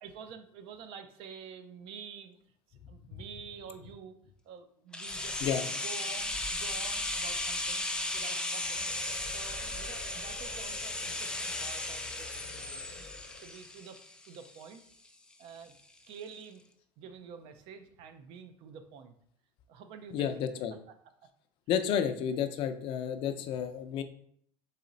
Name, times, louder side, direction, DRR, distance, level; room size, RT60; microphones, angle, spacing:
voice 1, 0.0-2.4 2.7-4.2 4.4-5.4 5.7-7.9 8.1-8.9 9.3-13.1 13.4-14.0 14.3-14.8 15.4-15.7 16.1-16.6 17.0-19.2 19.7-20.4 22.3-22.4, right 6 dB, 65° right, 8 dB, 0.6 m, -48 dB
sound 1, 4.9-14.8 15.1-15.2, left 2 dB, 10° left, 0.4 m, -36 dB
sound 2, 8.6-13.6, left 7 dB, 75° left, 0.9 m, -50 dB
voice 2, 20.1-20.7 21.7-24.0, left 8 dB, 60° left, 8 dB, 0.5 m, -31 dB
4.1 x 3.0 x 3.9 m, 0.64 s
supercardioid pair, 115°, 10 cm